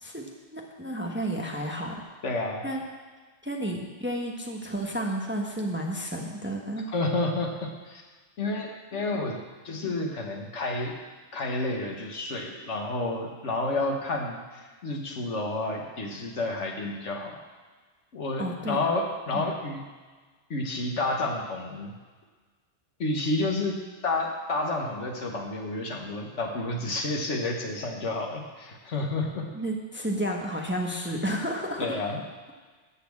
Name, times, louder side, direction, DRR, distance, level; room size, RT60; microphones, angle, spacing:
voice 1, 0.5-2.0 2.6-2.8 3.4-6.9 18.4-18.8 19.3-19.4 29.5-32.0, right 1 dB, 10° right, 0 dB, 1.0 m, -31 dB
voice 2, 2.2-2.7 6.9-8.0 8.4-9.4 9.6-11.0 11.3-17.4 18.1-19.8 20.5-21.9 23.0-23.7 24.0-29.5 31.8-32.2, left 2 dB, 75° left, 1 dB, 1.7 m, -30 dB
13.0 x 4.3 x 8.4 m, 1.4 s
omnidirectional pair, 1.2 m